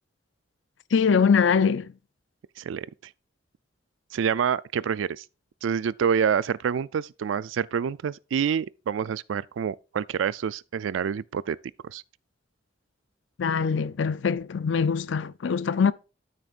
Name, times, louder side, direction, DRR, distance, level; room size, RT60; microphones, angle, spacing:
voice 1, 0.9-1.9 13.4-15.9, left 6 dB, 70° left, 0.4 m, -23 dB
voice 2, 4.1-5.2 5.6-11.6 11.8-12.0, right 7 dB, 85° right, 0.3 m, -27 dB
12.0 x 6.5 x 2.4 m
head